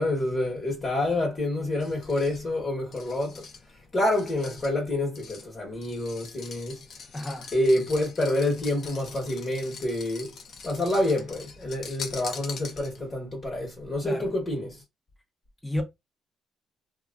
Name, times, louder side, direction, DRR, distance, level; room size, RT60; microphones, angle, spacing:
voice 1, 0.0-3.4 3.9-6.8 7.5-10.3 10.6-14.8, left 1 dB, 40° left, 1.2 m, -27 dB
sound 1, 1.8-13.2, left 5 dB, 60° left, 0.7 m, -44 dB
voice 2, 7.1-7.5 14.0-14.3 15.6-15.8, left 1 dB, 10° left, 0.8 m, -31 dB
2.9 x 2.3 x 2.4 m
cardioid pair, 90°, 0 cm